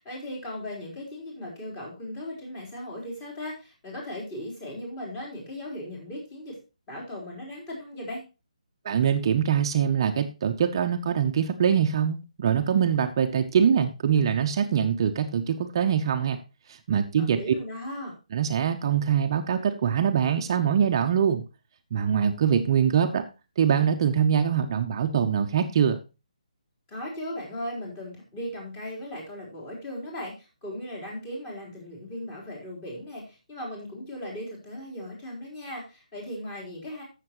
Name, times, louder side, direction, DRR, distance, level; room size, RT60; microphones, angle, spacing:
voice 1, 0.0-6.6 6.9-8.2 17.2-18.1 26.9-37.0, left 1 dB, 20° left, -2 dB, 3.8 m, -37 dB
voice 2, 8.8-16.4 16.7-17.4 18.3-21.4 21.9-23.2 23.6-26.0, right 8 dB, 40° right, 6 dB, 0.7 m, -23 dB
14.5 x 6.7 x 3.0 m, 0.29 s
hypercardioid pair, 155°, 4 cm